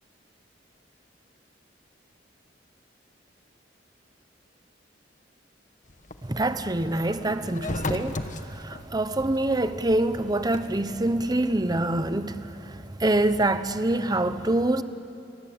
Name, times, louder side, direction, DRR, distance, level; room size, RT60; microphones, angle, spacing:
sound 1, 5.9-11.3, left 2 dB, 45° left, 1.3 m, -36 dB
voice 1, 6.2-14.8, right 1 dB, 20° right, 0.9 m, -25 dB
29.5 x 22.5 x 8.7 m
head